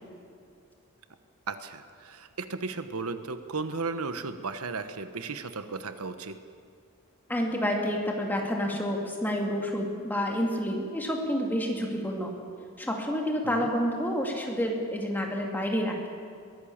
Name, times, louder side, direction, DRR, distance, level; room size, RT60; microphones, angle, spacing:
voice 1, 1.5-6.4 13.4-13.7, right 4 dB, 75° right, 10 dB, 1.1 m, -35 dB
voice 2, 7.3-12.3 12.8-16.1, equal, 10° left, 0 dB, 2.5 m, -29 dB
22.0 x 16.5 x 7.3 m, 2.3 s
head